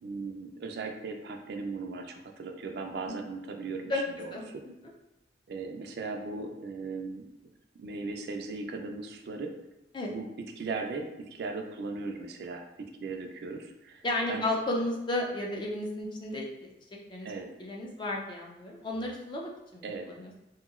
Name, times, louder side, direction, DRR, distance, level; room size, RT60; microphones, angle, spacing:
voice 1, 0.0-4.4 5.5-7.2 7.8-9.5 10.1-10.3 10.6-14.4 17.2-17.5 19.8-20.1, right 3 dB, 60° right, 4 dB, 0.3 m, -38 dB
voice 2, 14.0-16.7 17.1-17.3 17.6-20.3, left 1 dB, 25° left, -1 dB, 0.4 m, -33 dB
2.9 x 2.6 x 2.4 m, 0.93 s
head